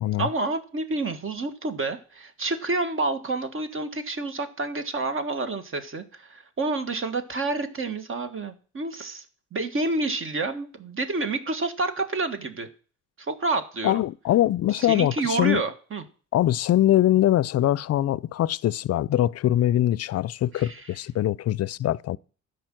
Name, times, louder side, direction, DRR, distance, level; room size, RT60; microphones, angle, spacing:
voice 1, 0.2-9.2 9.5-12.7 13.2-14.0 14.7-16.0 20.5-20.8, right 3 dB, 45° right, 1.6 m, -29 dB
voice 2, 13.8-15.6 16.3-22.2, left 13 dB, 55° left, 0.5 m, -23 dB
12.5 x 5.2 x 7.6 m
cardioid pair, 90°, 30 cm